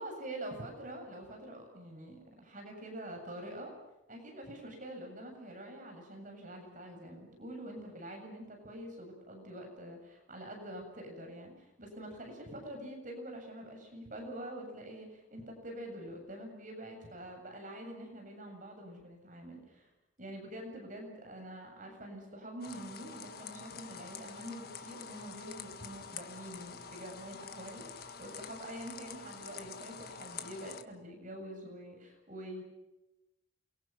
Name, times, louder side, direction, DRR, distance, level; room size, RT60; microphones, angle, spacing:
voice 1, 0.0-3.7 4.1-19.9 20.2-32.6, right 1 dB, 40° right, 3 dB, 7.4 m, -46 dB
sound 1, 22.6-30.8, left 6 dB, 50° left, 1.8 m, -47 dB
29.0 x 23.5 x 6.0 m, 0.94 s
head